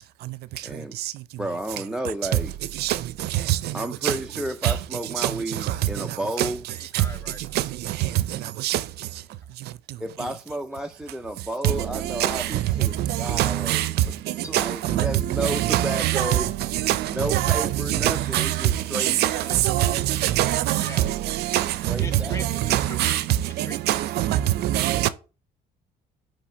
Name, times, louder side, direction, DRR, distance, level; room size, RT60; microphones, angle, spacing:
voice 1, 0.6-1.0 1.4-2.5 3.7-6.6 10.0-14.1 14.5-16.5 17.1-19.2 21.9-22.4, right 1 dB, 5° right, 0.4 m, -32 dB
voice 2, 6.4-7.8 8.1-8.2 8.6-8.7 15.9-16.1 19.1-20.4 20.8-21.1 22.0-23.2 23.5-24.4, left 1 dB, 15° left, 0.8 m, -43 dB
voice 3, 13.4-13.9 14.5-15.0 15.4-16.4 16.8-17.0 17.3-17.7 18.0-18.5 18.9-20.8 21.5-21.7 22.7-23.2 23.9-25.1, right 14 dB, 75° right, 0.5 m, -22 dB
6.1 x 3.3 x 4.9 m
cardioid pair, 110°, 17 cm